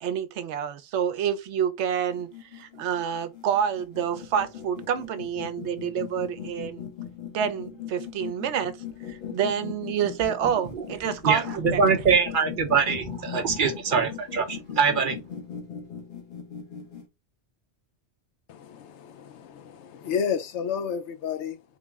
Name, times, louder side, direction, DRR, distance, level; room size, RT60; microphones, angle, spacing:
voice 1, 0.0-6.8 7.3-8.8 9.1-11.4 11.7-11.8, right 8 dB, 80° right, 0.9 m, -28 dB
sound 1, 2.0-17.1, left 8 dB, 55° left, 1.0 m, -39 dB
voice 2, 11.2-15.2, right 5 dB, 50° right, 0.8 m, -23 dB
voice 3, 18.5-21.6, left 7 dB, 85° left, 0.9 m, -31 dB
3.7 x 2.0 x 3.4 m
omnidirectional pair, 1.2 m